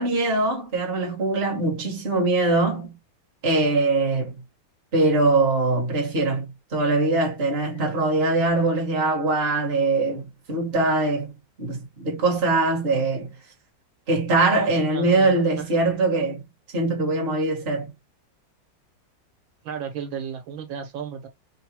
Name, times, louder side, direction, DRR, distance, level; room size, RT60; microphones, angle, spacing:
voice 1, 0.0-2.9 3.4-4.3 4.9-10.2 10.5-11.3 11.6-13.3 14.1-16.4 16.7-17.9, right 2 dB, 35° right, 1.5 m, -22 dB
voice 2, 14.5-15.7 19.6-21.3, right 7 dB, 85° right, 1.8 m, -34 dB
3.9 x 2.2 x 4.4 m
omnidirectional pair, 2.1 m